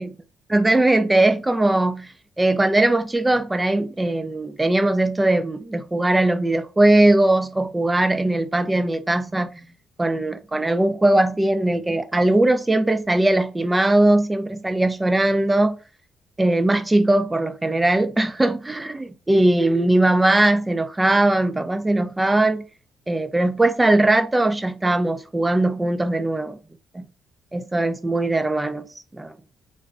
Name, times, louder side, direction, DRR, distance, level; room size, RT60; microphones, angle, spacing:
voice 1, 0.5-9.7 10.0-15.8 16.4-22.6 23.1-26.6 26.9-27.1 27.5-28.9 29.2-29.3, right 2 dB, 15° right, 0.5 m, -20 dB
3.8 x 2.2 x 3.4 m
cardioid pair, 90°, 0 cm